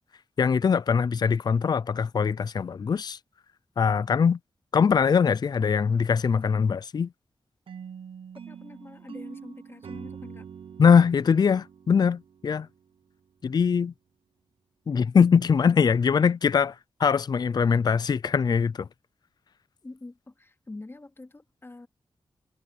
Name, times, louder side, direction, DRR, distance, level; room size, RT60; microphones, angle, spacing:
voice 1, 0.4-3.2 3.8-4.4 4.7-7.1 10.8-12.7 13.4-13.9 14.9-16.7 17.0-18.9, left 6 dB, 50° left, 0.4 m, -22 dB
sound 1, 7.7-12.8, right 7 dB, 75° right, 1.1 m, -44 dB
voice 2, 8.5-10.5 19.8-21.9, left 2 dB, 25° left, 2.7 m, -45 dB
wide cardioid pair, 95°, 9 cm